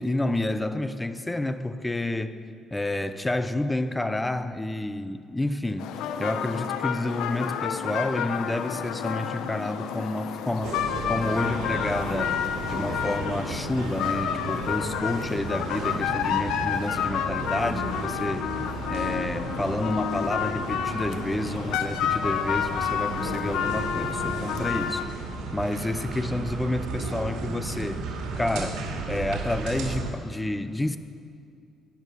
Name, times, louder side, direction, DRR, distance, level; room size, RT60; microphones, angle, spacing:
voice 1, 0.0-2.4 2.7-5.9 6.2-10.8 11.1-12.4 12.7-18.5 18.9-25.2 25.5-28.1 28.4-28.8 29.1-31.0, left 1 dB, 10° left, 11 dB, 0.8 m, -29 dB
sound 1, 5.8-25.0, left 8 dB, 85° left, 0.9 m, -30 dB
sound 2, 10.6-30.1, right 3 dB, 90° right, 2.5 m, -34 dB
17.5 x 10.5 x 6.5 m, 2.4 s
cardioid pair, 105°, 0 cm